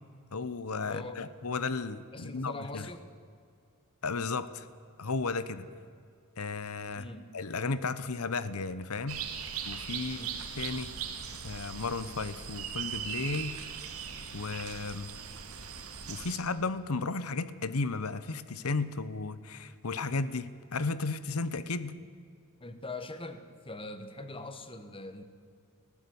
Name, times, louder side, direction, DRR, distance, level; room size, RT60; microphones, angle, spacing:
voice 1, 0.3-2.9 4.0-4.7 5.0-5.7 6.4-7.1 7.3-9.2 9.6-10.2 10.6-10.9 11.4-13.6 14.3-15.1 16.1-21.9, left 4 dB, 85° left, 15 dB, 0.9 m, -34 dB
voice 2, 0.9-1.2 2.1-3.1 7.0-7.4 10.0-10.4 22.6-25.2, left 2 dB, 25° left, 10 dB, 1.4 m, -42 dB
sound 1, 9.1-16.4, right 7 dB, 85° right, 2.2 m, -39 dB
19.5 x 15.0 x 9.5 m, 2.3 s
head